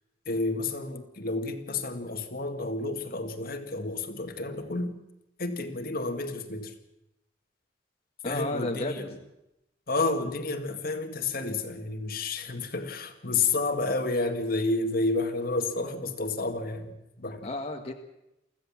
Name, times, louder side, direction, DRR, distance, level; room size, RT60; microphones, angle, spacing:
voice 1, 0.3-4.9 5.4-6.7 8.2-9.1 9.9-17.5, left 3 dB, 55° left, 6 dB, 2.1 m, -30 dB
voice 2, 8.2-9.2 17.4-17.9, left 2 dB, 35° left, 2 dB, 1.7 m, -33 dB
24.0 x 15.5 x 7.4 m, 0.88 s
head